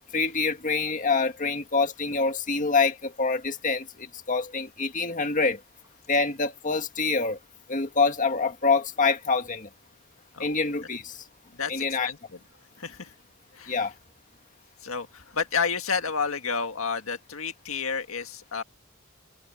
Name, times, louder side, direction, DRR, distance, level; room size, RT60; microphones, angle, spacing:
voice 1, 0.1-5.6 6.1-7.4 7.7-9.7 10.4-11.2 11.7-12.1 13.7-13.9, left 4 dB, 40° left, 1.8 m, -26 dB
voice 2, 11.6-12.4 12.8-13.1 13.5-13.9 14.8-18.6, left 5 dB, 70° left, 1.9 m, -31 dB
open air
head